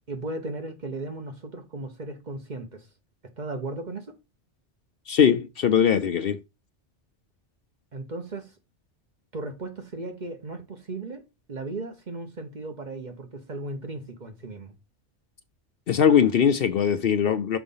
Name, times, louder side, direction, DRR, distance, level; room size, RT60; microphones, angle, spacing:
voice 1, 0.1-2.9 3.4-4.1 7.9-8.5 9.3-11.2 11.5-14.7, right 2 dB, 40° right, 1.1 m, -36 dB
voice 2, 5.1-6.4 15.9-17.6, left 8 dB, 60° left, 0.7 m, -21 dB
6.2 x 4.1 x 5.5 m
omnidirectional pair, 1.2 m